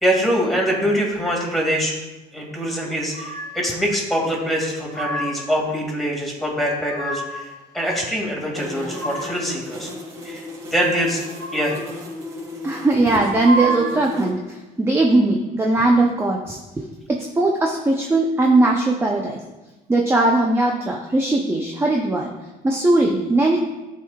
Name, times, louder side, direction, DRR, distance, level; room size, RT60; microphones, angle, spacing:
voice 1, 0.0-1.9 2.3-9.9 10.2-11.2 11.5-11.8, equal, ahead, -3 dB, 2.1 m, -24 dB
sound 1, 3.1-3.7 4.5-5.5 6.5-7.5 8.4-9.6 11.1-12.0 13.1-14.1, right 2 dB, 20° left, 2.2 m, -30 dB
sound 2, 8.5-14.3, left 2 dB, 50° right, 2.5 m, -35 dB
voice 2, 12.6-19.4 19.9-22.3 22.6-23.6, right 2 dB, 15° right, 0 dB, 0.6 m, -19 dB
12.0 x 4.7 x 2.4 m, 1.1 s
cardioid pair, 110°, 17 cm